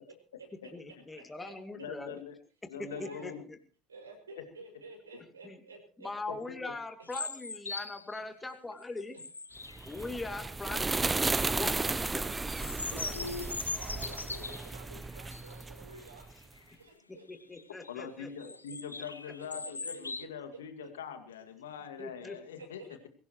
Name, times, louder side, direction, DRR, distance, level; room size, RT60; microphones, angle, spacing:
voice 1, 0.7-2.2 2.8-3.6 5.4-5.6 6.0-9.2 9.8-12.3 12.9-13.1 17.1-18.5 19.3-19.4 22.0-22.6, left 3 dB, 15° left, 7 dB, 2.5 m, -42 dB
voice 2, 1.7-2.4 2.7-3.4 6.3-6.6 13.1-13.5 17.9-23.1, left 7 dB, 75° left, 7 dB, 2.2 m, -43 dB
voice 3, 2.8-3.3 3.9-6.1 12.8-16.3 16.8-17.2 19.6-20.0 22.6-22.9, right 2 dB, 85° right, 2 dB, 6.3 m, -50 dB
sound 1, 7.1-8.2 8.7-10.3 11.0-11.5 11.9-14.8 15.3-15.5 15.9-16.0 16.4-16.7 17.3-17.9 18.4-20.3, left 3 dB, 90° left, 0.8 m, -41 dB
sound 2, 9.7-16.3, right 3 dB, 15° right, 0.7 m, -34 dB
23.0 x 16.5 x 3.1 m, 0.39 s
figure-of-eight pair, 70°, 0 cm